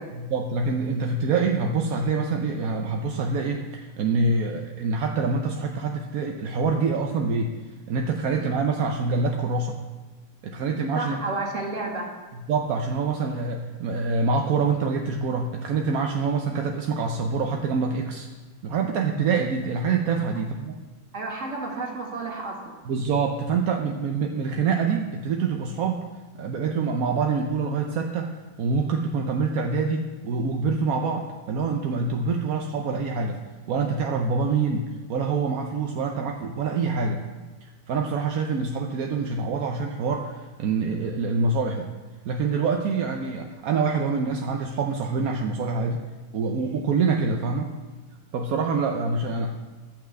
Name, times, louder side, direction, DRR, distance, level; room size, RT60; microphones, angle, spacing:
voice 1, 0.1-7.5 7.9-9.8 10.4-11.2 12.3-18.3 18.6-20.8 22.9-26.1 26.3-33.4 33.7-37.2 37.6-41.9 42.2-46.0 46.3-47.7 48.3-49.5, right 4 dB, 60° right, 2 dB, 1.0 m, -26 dB
voice 2, 11.0-12.1 21.1-22.8, right 3 dB, 40° right, -1 dB, 2.3 m, -31 dB
12.0 x 5.9 x 7.7 m, 1.3 s
omnidirectional pair, 2.0 m